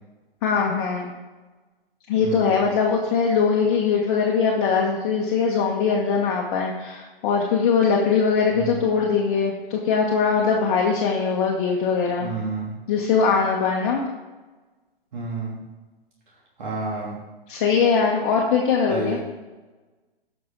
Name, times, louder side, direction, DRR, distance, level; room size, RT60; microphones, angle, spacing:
voice 1, 0.4-1.1 2.1-12.3 12.9-14.1 17.5-19.2, left 5 dB, 35° left, -2 dB, 1.6 m, -21 dB
voice 2, 2.2-2.6 8.5-8.8 12.2-12.7 15.1-15.6 16.6-17.2 18.9-19.2, right 3 dB, 55° right, -4 dB, 3.2 m, -30 dB
17.0 x 6.3 x 4.0 m, 1.2 s
figure-of-eight pair, 120°, 29 cm